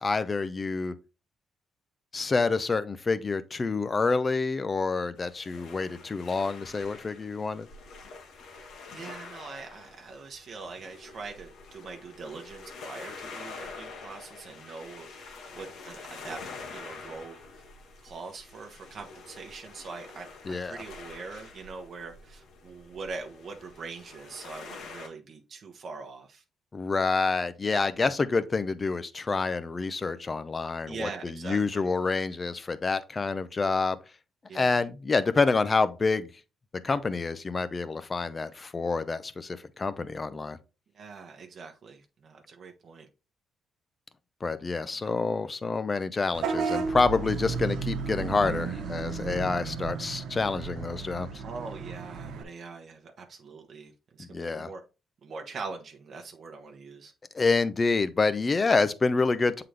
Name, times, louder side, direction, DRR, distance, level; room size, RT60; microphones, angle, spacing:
voice 1, 0.0-0.9 2.1-7.7 20.5-20.8 26.7-34.0 34.5-36.3 36.8-40.6 44.4-51.3 54.2-54.7 57.3-59.6, left 4 dB, 30° left, 0.6 m, -27 dB
sound 1, 5.2-25.1, left 4 dB, 80° left, 1.3 m, -46 dB
voice 2, 8.9-16.4 16.7-17.7 18.0-26.4 30.9-31.9 32.1-32.2 34.5-34.8 40.9-43.1 44.8-45.1 51.4-54.8 55.2-57.1, right 4 dB, 55° right, 1.0 m, -43 dB
Vehicle horn car horn honking / Bus, 46.3-52.4, right 5 dB, 80° right, 1.1 m, -33 dB
7.6 x 3.9 x 3.3 m
cardioid pair, 90°, 0 cm